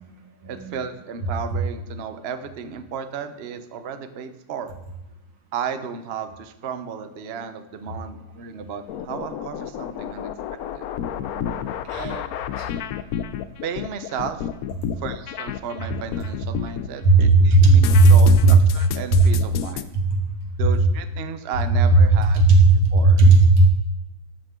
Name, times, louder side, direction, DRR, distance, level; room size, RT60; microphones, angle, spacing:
voice 1, 0.5-4.7 5.5-10.9 12.0-12.3 13.6-14.5 15.0-19.9 20.6-22.5 22.9-23.2, right 7 dB, 55° right, 9 dB, 0.6 m, -34 dB
sound 1, 8.9-16.9 17.2-19.8, left 10 dB, 80° left, 0.8 m, -30 dB
voice 2, 11.2-11.6 11.9-12.1 17.0-18.1 18.4-18.5 19.1-19.2 22.4-23.7, right 2 dB, 90° right, 3 dB, 2.4 m, -14 dB
13.5 x 8.8 x 3.8 m, 1.0 s
omnidirectional pair, 2.2 m